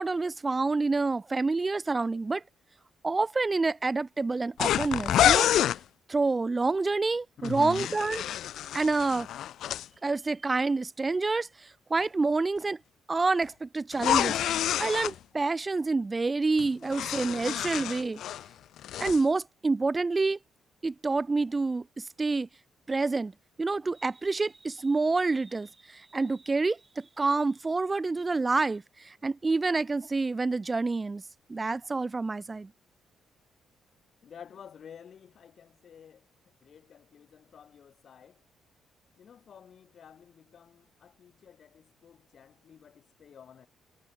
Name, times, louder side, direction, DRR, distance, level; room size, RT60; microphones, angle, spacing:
voice 1, 0.0-2.4 3.0-5.5 6.1-8.2 8.7-9.3 10.0-12.8 13.1-14.4 14.8-18.2 19.0-20.4 20.8-22.5 22.9-23.3 23.6-31.2 31.5-32.7, right 3 dB, 25° right, 0.4 m, -28 dB
sound 1, 4.6-5.8 7.4-9.9 13.9-15.1 16.6-18.5 18.8-19.2, left 11 dB, 75° left, 0.4 m, -28 dB
voice 2, 7.4-8.0 34.2-38.4 39.2-43.7, left 8 dB, 55° left, 3.5 m, -47 dB
cardioid pair, 90°, 0 cm